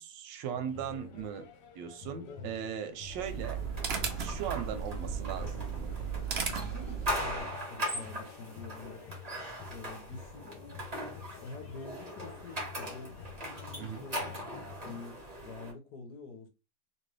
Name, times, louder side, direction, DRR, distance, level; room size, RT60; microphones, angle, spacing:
voice 1, 0.0-1.5 1.8-3.6 4.2-5.9 13.8-14.0, right 8 dB, 90° right, 1.3 m, -38 dB
sound 1, 0.5-14.8, left 7 dB, 85° left, 1.3 m, -50 dB
voice 2, 2.3-2.6 6.6-9.0 9.7-10.6 11.0-11.1 11.4-14.3 14.8-16.5, left 3 dB, 70° left, 1.3 m, -47 dB
sound 2, 3.0-7.5, right 6 dB, 65° right, 0.6 m, -36 dB
sound 3, 3.4-15.7, equal, 25° right, 1.2 m, -40 dB
3.0 x 3.0 x 3.2 m
omnidirectional pair, 1.9 m